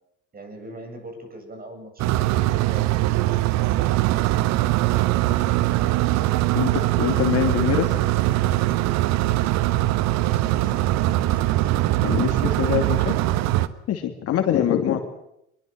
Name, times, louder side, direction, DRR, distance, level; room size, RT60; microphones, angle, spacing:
voice 1, 0.3-4.5 10.2-11.4, right 2 dB, 25° right, 6 dB, 7.9 m, -42 dB
sound 1, 2.0-13.7, right 16 dB, 50° right, 1.3 m, -21 dB
voice 2, 6.5-8.0 12.0-13.1 13.9-15.0, left 10 dB, 45° left, 6 dB, 2.6 m, -24 dB
24.0 x 22.0 x 7.6 m, 0.78 s
figure-of-eight pair, 65°, 35 cm